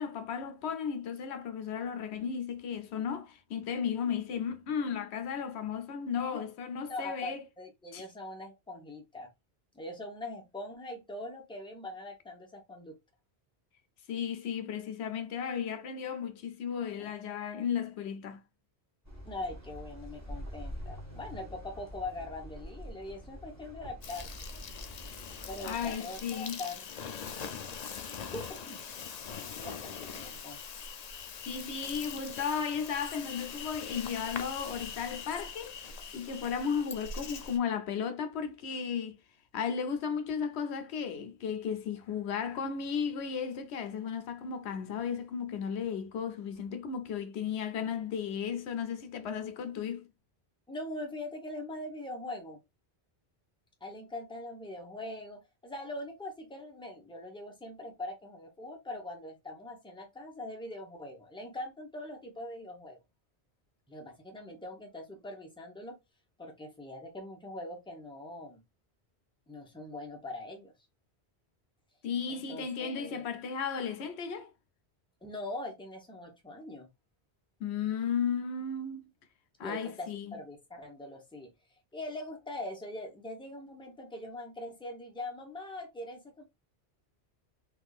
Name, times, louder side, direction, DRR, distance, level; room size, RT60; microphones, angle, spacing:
voice 1, 0.0-7.4 7.9-8.0 14.1-18.4 25.6-26.6 31.5-39.2 39.5-50.1 72.0-74.5 77.6-79.0 79.6-80.3, left 7 dB, 80° left, 0.9 m, -35 dB
voice 2, 6.9-9.3 9.7-12.9 17.0-17.1 19.2-24.5 25.5-26.8 28.3-28.8 29.6-30.6 50.7-52.6 53.8-63.0 63.9-66.0 66.4-68.6 69.5-70.7 72.3-73.2 75.2-76.9 79.6-81.5 81.9-86.4, left 2 dB, 5° left, 0.9 m, -42 dB
sound 1, 19.0-25.9, equal, 15° right, 1.3 m, -45 dB
Insect, 24.0-37.6, left 6 dB, 50° left, 0.5 m, -42 dB
3.5 x 3.1 x 2.4 m
omnidirectional pair, 1.1 m